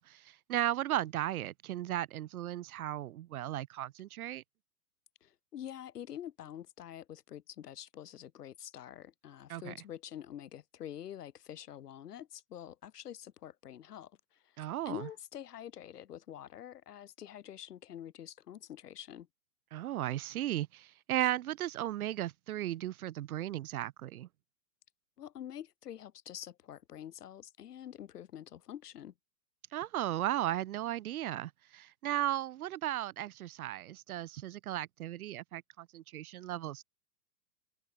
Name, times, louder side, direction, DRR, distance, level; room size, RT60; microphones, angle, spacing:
voice 1, 0.0-4.4 9.5-9.7 14.6-15.1 19.7-24.3 29.7-36.8, right 13 dB, 60° right, 1.8 m, -36 dB
voice 2, 5.2-14.6 14.9-19.3 25.2-29.1, left 10 dB, 65° left, 4.0 m, -46 dB
hypercardioid pair, 120°, 49 cm